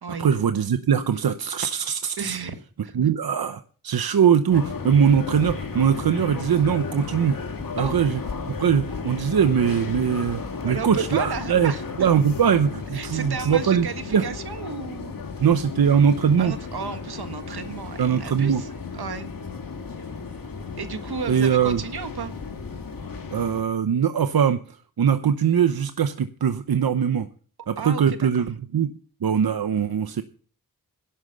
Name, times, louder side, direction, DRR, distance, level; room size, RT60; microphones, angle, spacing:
voice 1, 0.2-2.4 2.9-7.4 7.8-8.2 8.6-11.7 12.0-14.2 15.4-16.5 18.0-18.6 21.3-21.8 23.3-24.6 25.0-27.3 27.7-28.9 29.2-30.2, right 7 dB, 70° right, 9 dB, 0.9 m, -21 dB
voice 2, 2.2-3.0 7.8-8.0 10.7-11.8 12.9-15.2 16.4-18.7 18.9-19.3 20.8-22.3 27.8-28.5, right 5 dB, 85° right, 8 dB, 1.7 m, -33 dB
sound 1, 4.5-23.6, left 4 dB, 60° left, 2.4 m, -34 dB
11.5 x 9.2 x 6.8 m, 0.41 s
wide cardioid pair, 110°, 37 cm